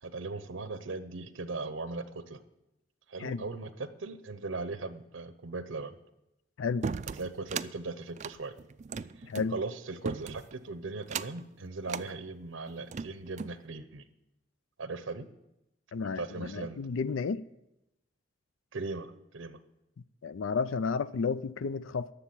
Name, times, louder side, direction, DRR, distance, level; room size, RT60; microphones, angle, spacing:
voice 1, 0.0-2.4 3.1-5.9 7.2-8.5 9.2-14.0 14.8-15.3 16.2-16.8 18.7-19.6, right 3 dB, 90° right, 0.8 m, -38 dB
voice 2, 6.6-6.9 9.2-9.6 15.9-17.5 20.2-22.1, left 5 dB, 85° left, 0.4 m, -32 dB
sound 1, 6.8-7.7 8.1-9.5 10.0-10.6 11.0-11.4 11.9-12.1 12.7-13.6, right 5 dB, 35° right, 0.3 m, -37 dB
12.0 x 6.8 x 8.6 m
head